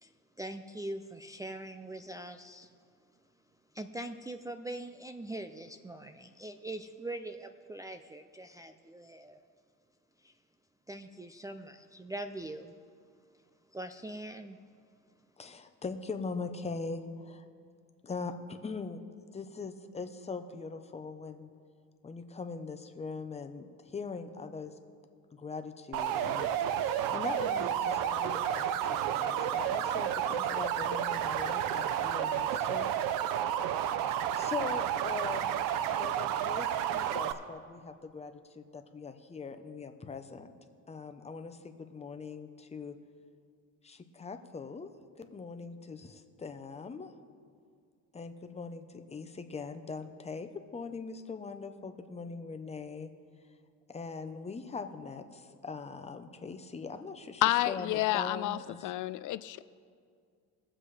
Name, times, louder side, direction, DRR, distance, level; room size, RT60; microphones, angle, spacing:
voice 1, 0.0-2.7 3.7-9.4 10.2-10.4 10.9-12.8 13.7-14.6, right 1 dB, 10° right, 5 dB, 0.3 m, -42 dB
voice 2, 15.4-17.5 18.0-19.0 19.3-21.5 22.0-24.7 25.3-26.5 26.7-32.9 34.3-35.6 35.9-40.5 40.9-43.0 43.8-44.9 45.2-47.1 48.1-53.1 53.9-58.9, left 4 dB, 20° left, 7 dB, 0.8 m, -41 dB
sound 1, 25.9-37.3, right 10 dB, 90° right, 0.7 m, -31 dB
voice 3, 57.4-58.6 58.8-59.6, left 16 dB, 70° left, 15 dB, 0.4 m, -29 dB
21.5 x 7.5 x 3.3 m, 2.1 s
cardioid pair, 120°, 32 cm